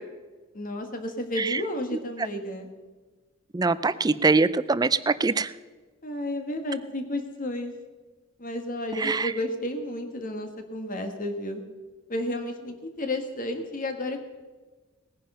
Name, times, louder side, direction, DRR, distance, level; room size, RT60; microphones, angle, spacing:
voice 1, 0.5-2.7 6.0-7.7 8.4-11.6 12.1-14.2, left 1 dB, 40° left, 6 dB, 1.8 m, -32 dB
voice 2, 3.5-5.5 9.0-9.2, right 3 dB, 20° right, 16 dB, 0.4 m, -22 dB
19.5 x 10.0 x 5.6 m, 1.3 s
head